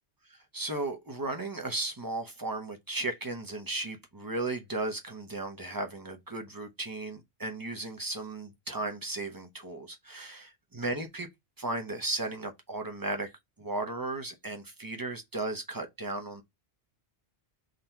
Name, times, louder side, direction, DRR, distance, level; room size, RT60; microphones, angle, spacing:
voice 1, 0.3-11.3 11.6-13.3 13.6-16.4, right 2 dB, 20° right, 0.7 m, -35 dB
3.8 x 2.8 x 4.4 m
omnidirectional pair, 1.1 m